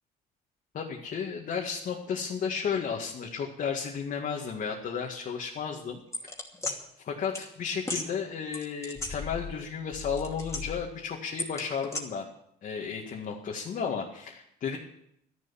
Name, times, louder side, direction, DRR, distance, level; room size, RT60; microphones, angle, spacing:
voice 1, 0.7-6.0 7.0-12.3 12.6-14.8, left 6 dB, 55° left, -1 dB, 2.1 m, -33 dB
sound 1, 6.1-6.8 7.3-7.5 7.8-8.1 8.5-9.6 9.9-10.9 11.4-12.0, left 3 dB, 15° left, 2.6 m, -35 dB
13.0 x 11.5 x 7.2 m, 0.74 s
cardioid pair, 110°, 17 cm